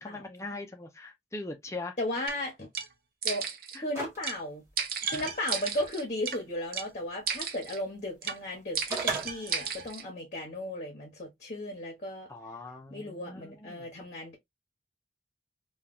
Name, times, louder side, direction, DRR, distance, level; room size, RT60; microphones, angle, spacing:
voice 1, 0.0-2.0 3.7-3.8 12.3-13.9, left 2 dB, 15° left, 0.6 m, -41 dB
voice 2, 2.0-2.7 3.2-3.5 3.8-4.6 5.1-12.3 12.9-14.3, left 1 dB, 40° left, 0.9 m, -35 dB
sound 1, 2.3-2.4 2.7-2.9 3.2-3.8 4.2-4.4 4.8-6.4 6.7-6.9 7.3-7.8 8.2-8.4 8.8-10.0, right 6 dB, 55° right, 0.5 m, -33 dB
sound 2, 3.9-4.3 4.7-4.8 8.5-9.3, right 3 dB, 15° right, 1.0 m, -34 dB
3.1 x 2.3 x 2.3 m
head